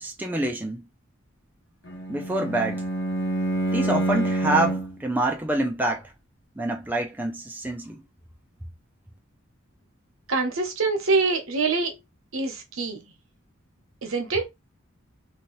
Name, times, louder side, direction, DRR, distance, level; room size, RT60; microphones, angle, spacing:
voice 1, 0.0-0.8 2.1-2.8 3.7-6.1 6.6-8.0, right 2 dB, 10° right, 0.5 m, -26 dB
Bowed string instrument, 1.8-5.0, right 1 dB, 60° left, 1.2 m, -27 dB
voice 2, 10.3-12.0 12.3-13.0 14.0-14.4, right 3 dB, 80° right, 0.9 m, -25 dB
2.9 x 2.4 x 3.0 m
head